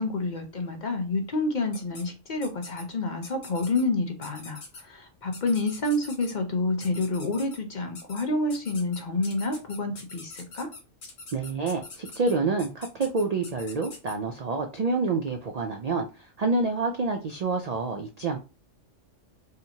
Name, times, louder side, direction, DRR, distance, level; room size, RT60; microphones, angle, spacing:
voice 1, 0.0-10.7, left 2 dB, 45° left, 0.7 m, -28 dB
sound 1, 1.7-2.0 2.4-2.8 3.2-3.8 4.2-4.8 5.3-6.3 6.8-7.6 7.9-8.2 8.5-14.1, left 3 dB, 90° left, 1.7 m, -44 dB
voice 2, 11.3-16.1 16.4-18.4, right 3 dB, 75° right, 0.3 m, -27 dB
4.9 x 2.8 x 2.8 m
omnidirectional pair, 1.3 m